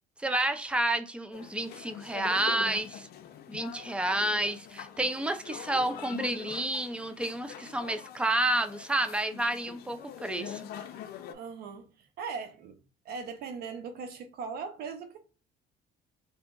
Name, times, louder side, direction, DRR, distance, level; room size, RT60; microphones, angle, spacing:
voice 1, 0.2-3.1 3.5-10.6, right 1 dB, 5° right, 0.4 m, -30 dB
sound 1, 1.3-11.3, left 10 dB, 70° left, 0.5 m, -44 dB
voice 2, 11.3-12.8 13.0-15.2, right 5 dB, 70° right, 0.8 m, -39 dB
2.7 x 2.4 x 3.7 m
cardioid pair, 110°, 17 cm